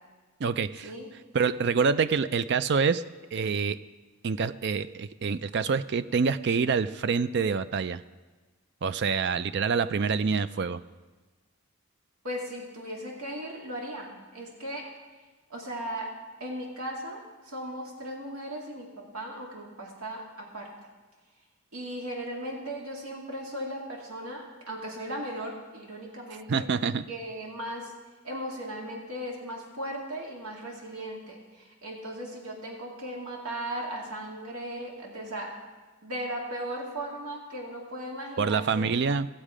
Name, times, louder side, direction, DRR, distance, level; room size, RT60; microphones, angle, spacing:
voice 1, 0.4-0.9 1.3-3.0 3.3-3.8 4.2-8.0 8.8-10.8 26.5-27.0 38.4-39.4, right 5 dB, 50° right, 14 dB, 0.4 m, -26 dB
voice 2, 12.2-14.9 15.5-16.1 16.4-20.7 21.7-26.7 27.1-27.9 28.2-35.5 36.0-38.9, right 1 dB, 80° right, -1 dB, 2.1 m, -37 dB
17.0 x 7.4 x 5.0 m, 1.3 s
head